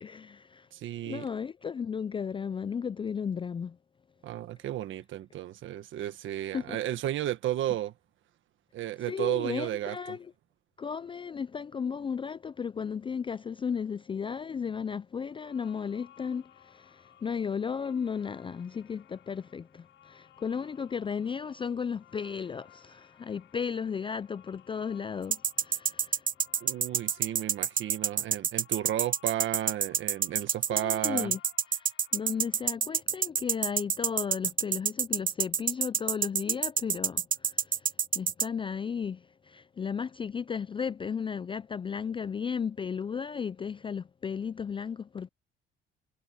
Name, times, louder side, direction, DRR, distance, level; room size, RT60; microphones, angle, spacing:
voice 1, 0.0-0.7 1.1-3.8 6.5-6.8 9.1-10.3 10.8-16.4 16.7-26.2 30.7-31.4 31.7-31.8 32.1-37.6 38.1-39.2 39.5-45.3, left 6 dB, 25° left, 0.3 m, -34 dB
voice 2, 0.7-1.3 4.2-7.9 8.7-10.2 26.6-31.4, right 13 dB, 75° right, 1.3 m, -33 dB
sound 1, 15.3-32.7, left 12 dB, 80° left, 5.8 m, -60 dB
sound 2, 25.3-38.5, right 7 dB, 45° right, 1.1 m, -27 dB
cardioid pair, 90°, 20 cm